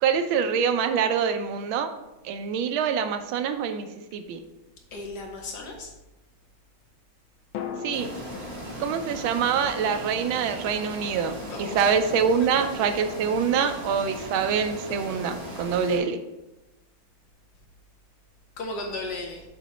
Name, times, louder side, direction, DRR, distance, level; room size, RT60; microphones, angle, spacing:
voice 1, 0.0-1.9 2.2-3.9 4.1-4.4 7.8-8.1 8.8-16.2, right 7 dB, 80° right, 8 dB, 1.4 m, -25 dB
sound 1, 4.1-5.1 7.5-11.5 11.8-11.9, left 7 dB, 80° left, 1.4 m, -42 dB
voice 2, 4.9-5.9 11.5-11.9 18.6-19.4, left 2 dB, 60° left, 2 dB, 1.3 m, -35 dB
sound 2, 7.9-16.0, equal, 35° right, 1.6 m, -38 dB
7.1 x 3.0 x 5.7 m, 0.98 s
omnidirectional pair, 2.2 m